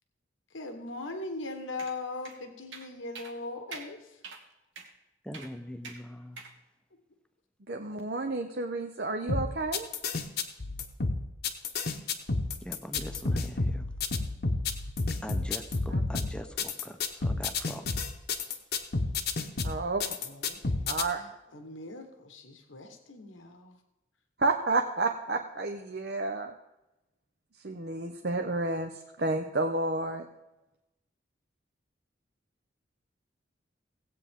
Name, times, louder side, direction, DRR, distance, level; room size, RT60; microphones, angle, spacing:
voice 1, 0.5-4.2 20.2-20.9 21.1-23.8, left 2 dB, 90° left, 6 dB, 1.3 m, -40 dB
sound 1, 1.8-2.0 2.3-2.4 2.7-2.9 3.2-3.3 3.7-3.9 4.2-4.4 4.8-4.9 5.3-5.5 5.8-6.0 6.4-6.5, right 4 dB, 85° right, 1.5 m, -44 dB
voice 2, 5.2-6.4 12.6-13.9 15.2-18.0, equal, 5° left, 7 dB, 0.7 m, -42 dB
voice 3, 7.7-9.9 15.9-16.0 19.6-20.0 20.9-21.2 24.4-26.5 27.6-28.9 29.2-30.3, right 2 dB, 55° right, 4 dB, 0.7 m, -30 dB
sound 2, 9.3-21.0, left 3 dB, 55° left, 0.9 m, -30 dB
17.0 x 8.4 x 3.7 m, 0.95 s
head